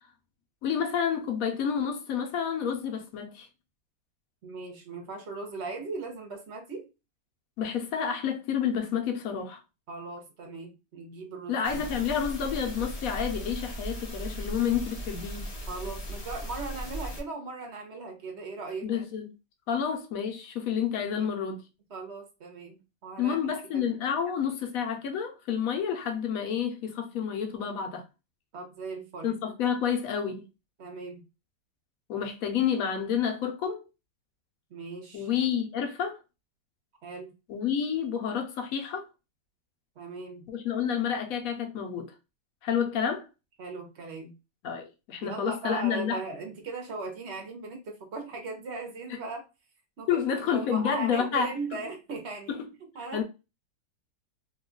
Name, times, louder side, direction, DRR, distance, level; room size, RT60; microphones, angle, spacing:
voice 1, 0.6-3.5 7.6-9.6 11.5-15.5 18.8-19.3 19.7-21.6 23.2-28.0 29.2-30.4 32.1-33.8 35.1-36.2 37.5-39.1 40.5-42.1 42.6-43.2 44.6-46.2 50.1-51.5 52.5-52.6 53.1-53.2, left 8 dB, 65° left, 0.9 m, -29 dB
voice 2, 4.4-6.9 9.9-11.9 15.7-18.9 21.0-21.3 21.9-23.4 23.7-23.9 28.5-29.3 30.8-31.3 34.7-35.3 37.0-37.3 40.0-40.4 43.6-44.3 45.2-49.4 50.0-52.6 52.9-53.2, right 4 dB, 55° right, 0.8 m, -38 dB
sound 1, 11.6-17.2, equal, 45° left, 0.4 m, -37 dB
2.9 x 2.3 x 3.7 m
omnidirectional pair, 1.9 m